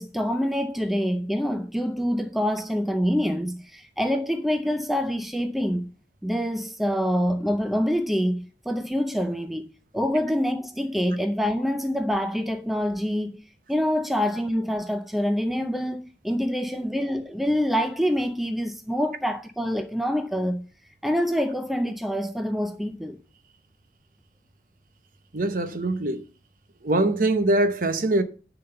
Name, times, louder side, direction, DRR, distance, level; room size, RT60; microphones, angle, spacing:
voice 1, 0.0-5.9 6.2-13.4 13.7-20.6 21.0-23.2, equal, ahead, 0.5 m, -26 dB
voice 2, 25.3-26.3 26.8-28.2, right 2 dB, 45° right, 0.8 m, -23 dB
9.9 x 4.0 x 6.8 m
head